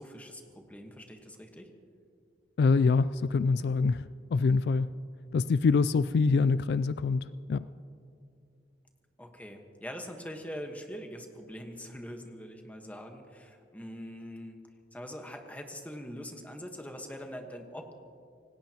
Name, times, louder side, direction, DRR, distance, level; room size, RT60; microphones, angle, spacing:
voice 1, 0.0-1.7 9.2-14.6 14.9-17.9, equal, 10° left, 3 dB, 1.3 m, -43 dB
voice 2, 2.6-4.9 5.3-7.6, left 4 dB, 60° left, 15 dB, 0.3 m, -25 dB
26.0 x 18.5 x 3.0 m, 2.4 s
head